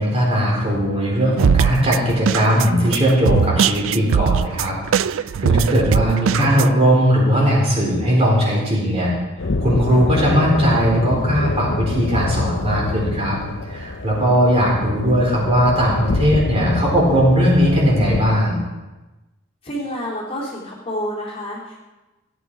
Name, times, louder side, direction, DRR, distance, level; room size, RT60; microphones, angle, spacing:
voice 1, 0.0-9.1 9.6-18.6, equal, 30° right, -3 dB, 4.0 m, -18 dB
sound 1, 1.4-6.7, right 7 dB, 75° right, 0.3 m, -20 dB
sound 2, 9.4-18.2, left 3 dB, 65° left, 0.7 m, -26 dB
voice 2, 19.6-21.8, equal, 30° left, -5 dB, 2.8 m, -28 dB
16.0 x 9.3 x 4.8 m, 1.1 s
head